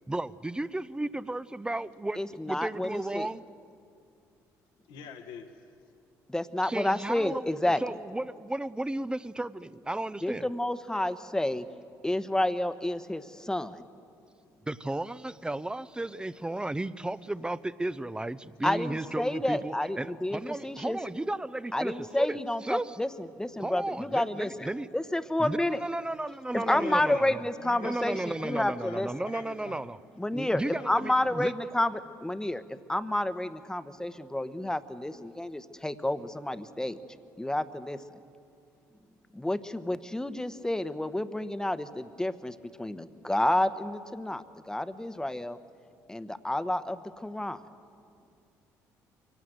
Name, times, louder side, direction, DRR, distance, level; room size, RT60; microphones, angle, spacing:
voice 1, 0.1-2.2 2.5-3.4 6.6-10.4 14.7-22.9 23.6-24.9 25.4-27.4 27.8-30.0 30.3-31.5, right 2 dB, 10° right, 16 dB, 0.6 m, -34 dB
voice 2, 2.2-3.3 6.3-7.8 10.2-11.7 12.0-13.9 18.6-21.0 21.7-24.7 24.9-25.8 26.5-29.1 30.2-37.0 37.4-38.0 39.3-45.6 46.1-47.6, left 1 dB, 10° left, 11 dB, 1.0 m, -30 dB
voice 3, 4.9-5.5 26.5-27.2 27.5-29.8 30.7-31.4, left 7 dB, 80° left, 4 dB, 1.4 m, -44 dB
23.5 x 17.5 x 7.9 m, 2.5 s
supercardioid pair, 70°, 8 cm